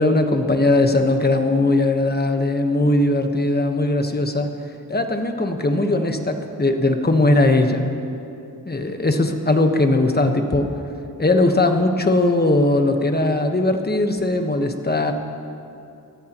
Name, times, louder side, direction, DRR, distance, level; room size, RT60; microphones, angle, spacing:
voice 1, 0.0-4.5 4.9-7.9 8.7-10.7 11.2-15.1, left 2 dB, 25° left, 5 dB, 1.3 m, -19 dB
24.0 x 14.0 x 3.1 m, 2.7 s
cardioid pair, 70°, 38 cm